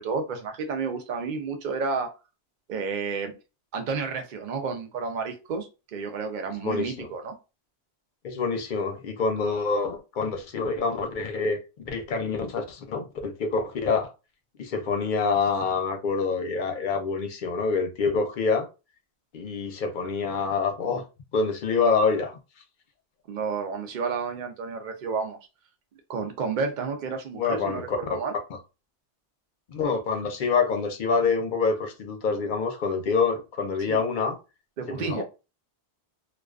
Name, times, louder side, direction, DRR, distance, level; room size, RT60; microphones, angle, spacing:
voice 1, 0.0-2.1 2.7-3.3 3.7-7.4 23.3-25.4 26.1-28.3 33.9-34.0 34.8-35.2, right 5 dB, 55° right, 0.6 m, -31 dB
voice 2, 6.6-7.1 8.2-11.6 11.9-14.1 14.6-18.7 19.3-21.0 21.3-22.4 27.4-28.2 29.7-34.4 34.9-35.2, left 4 dB, 55° left, 0.6 m, -26 dB
2.3 x 2.2 x 2.3 m
omnidirectional pair, 1.1 m